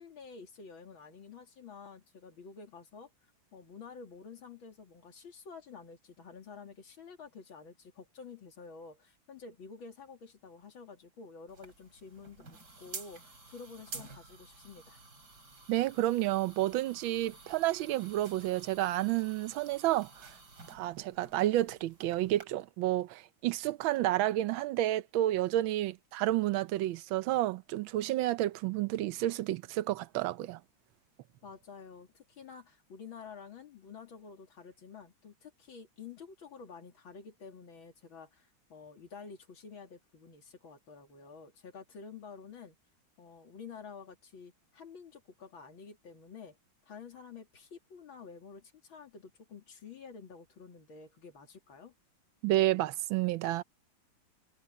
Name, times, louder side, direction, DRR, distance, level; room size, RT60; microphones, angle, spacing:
voice 1, 0.0-3.1 3.5-15.0 31.4-42.8 43.2-46.6 46.8-51.9, left 5 dB, 90° left, 3.3 m, -50 dB
sound 1, 11.5-22.5, right 4 dB, 55° right, 3.7 m, -51 dB
voice 2, 15.7-20.3 20.7-30.6 52.4-53.6, right 14 dB, 85° right, 1.5 m, -30 dB
omnidirectional pair, 2.1 m